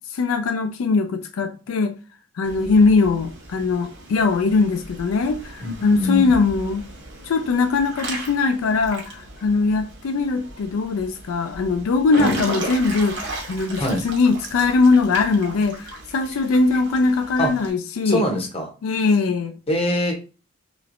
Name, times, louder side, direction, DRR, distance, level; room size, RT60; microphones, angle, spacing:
voice 1, 0.1-2.0 2.4-6.8 7.2-18.2 18.8-19.6, left 4 dB, 75° left, 0.4 m, -21 dB
Water / Splash splatter / Drip, 2.4-17.7, right 1 dB, 55° right, 0.8 m, -36 dB
voice 2, 5.6-6.2 12.2-12.3 13.8-14.0 17.4-17.5 18.0-18.7 19.7-20.2, left 1 dB, 25° left, 0.7 m, -23 dB
3.0 x 3.0 x 2.5 m
head